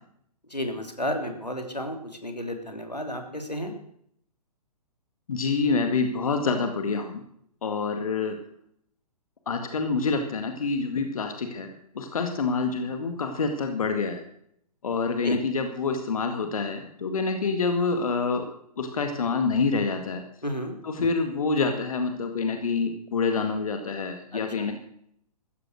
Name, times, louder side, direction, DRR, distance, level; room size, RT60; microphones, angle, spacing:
voice 1, 0.5-3.7 15.2-15.4 20.4-20.7 24.3-24.4, equal, 90° left, 5 dB, 3.2 m, -32 dB
voice 2, 5.3-7.2 7.6-8.4 9.5-14.2 14.8-18.5 18.8-20.2 20.8-24.8, left 4 dB, 60° left, 6 dB, 2.1 m, -27 dB
15.0 x 14.0 x 6.4 m, 0.69 s
figure-of-eight pair, 120°, 20 cm